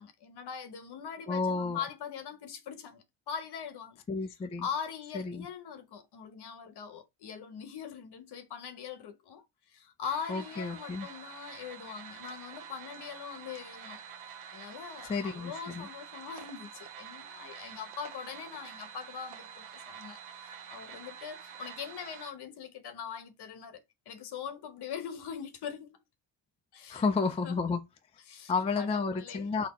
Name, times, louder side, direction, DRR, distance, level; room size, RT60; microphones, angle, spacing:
voice 1, 0.0-4.0 4.6-26.0 26.7-27.1 27.4-27.6 28.3-29.5, left 7 dB, 55° left, 1.0 m, -42 dB
voice 2, 1.3-1.8 4.1-4.7 5.1-5.5 10.3-11.1 15.0-15.9 26.9-27.8 28.5-29.7, left 4 dB, 15° left, 0.3 m, -31 dB
sound 1, 10.0-22.3, right 8 dB, 90° right, 0.9 m, -47 dB
4.1 x 2.9 x 4.1 m
cardioid pair, 150°, 47 cm